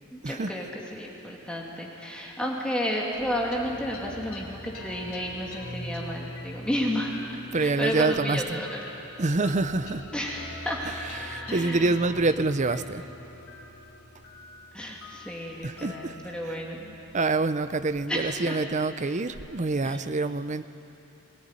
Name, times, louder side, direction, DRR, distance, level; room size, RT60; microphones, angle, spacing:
voice 1, 0.1-7.1 7.5-8.8 9.1-9.2 10.1-11.9 14.7-17.0 18.1-18.6 19.8-20.0, equal, 5° left, -2 dB, 2.5 m, -32 dB
sound 1, 3.1-17.8, left 1 dB, 75° left, 3.6 m, -43 dB
voice 2, 7.5-8.6 9.2-10.0 11.2-13.0 15.6-16.1 16.5-16.6 17.1-20.6, right 3 dB, 35° right, 12 dB, 0.7 m, -26 dB
22.0 x 18.0 x 9.8 m, 2.9 s
head